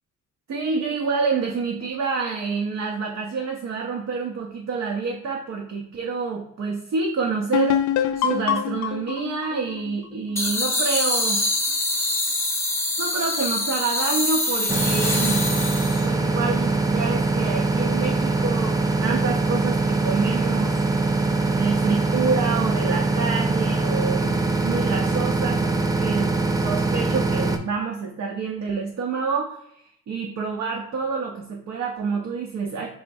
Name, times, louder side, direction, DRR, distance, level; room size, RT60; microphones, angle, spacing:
voice 1, 0.5-7.9 8.1-11.4 13.0-15.5 16.0-20.8 21.5-24.4 24.6-32.9, right 5 dB, 60° right, 1 dB, 0.8 m, -28 dB
sound 1, 7.5-11.1, left 9 dB, 70° left, 0.4 m, -25 dB
sound 2, 10.4-16.1, left 2 dB, 10° left, 0.9 m, -25 dB
sound 3, 14.7-27.6, right 3 dB, 10° right, 0.5 m, -23 dB
3.8 x 3.5 x 2.6 m, 0.72 s
cardioid pair, 90°, 30 cm